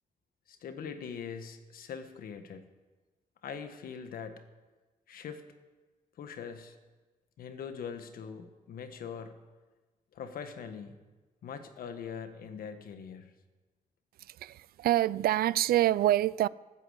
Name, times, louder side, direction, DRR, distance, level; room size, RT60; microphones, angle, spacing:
voice 1, 0.5-2.6 3.4-4.4 5.1-5.4 6.2-6.7 7.4-9.3 10.1-11.0 11.4-13.3, left 6 dB, 70° left, 1.5 m, -42 dB
voice 2, 14.2-16.5, right 13 dB, 85° right, 0.4 m, -26 dB
19.5 x 9.2 x 8.2 m
wide cardioid pair, 160°, 15 cm